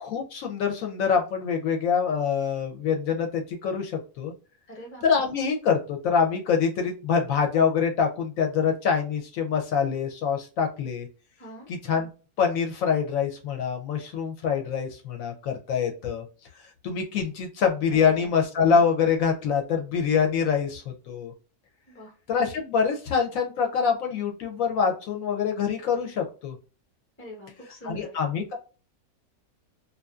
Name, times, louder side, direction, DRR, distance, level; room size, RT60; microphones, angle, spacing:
voice 1, 0.0-4.3 5.0-11.1 11.7-12.1 12.4-16.2 16.8-21.3 22.3-26.6 27.8-28.6, left 6 dB, 70° left, 3 dB, 0.9 m, -25 dB
voice 2, 4.7-5.0 11.4-11.7 17.9-18.3 21.9-22.1 27.2-28.2, equal, 15° left, 0 dB, 0.5 m, -43 dB
2.5 x 2.5 x 2.2 m, 0.34 s
omnidirectional pair, 1.6 m